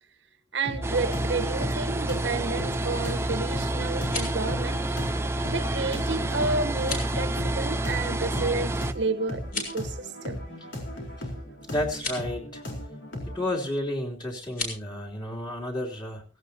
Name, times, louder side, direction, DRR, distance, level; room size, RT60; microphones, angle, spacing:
voice 1, 0.5-5.0 5.5-10.4, right 3 dB, 70° right, 1.2 m, -31 dB
sound 1, 0.6-13.5, left 1 dB, 85° left, 4.1 m, -37 dB
sound 2, 0.8-8.9, right 1 dB, 15° right, 0.5 m, -29 dB
sound 3, 3.9-4.5 6.7-7.1 9.4-9.9 11.9-12.2 14.5-14.8, left 3 dB, 50° left, 5.0 m, -34 dB
voice 2, 11.7-12.6 13.2-16.2, left 1 dB, 25° left, 3.2 m, -31 dB
17.0 x 16.5 x 2.9 m
head